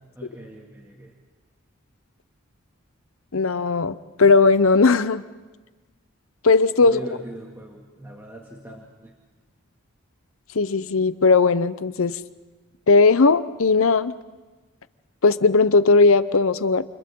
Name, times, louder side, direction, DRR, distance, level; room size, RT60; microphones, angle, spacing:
voice 1, 0.1-1.1 6.8-9.1, equal, 10° right, -2 dB, 2.2 m, -40 dB
voice 2, 3.3-5.2 6.4-7.0 10.5-12.2 12.9-14.1 15.2-16.8, left 4 dB, 70° left, 14 dB, 0.7 m, -17 dB
29.5 x 29.5 x 3.8 m, 1.3 s
head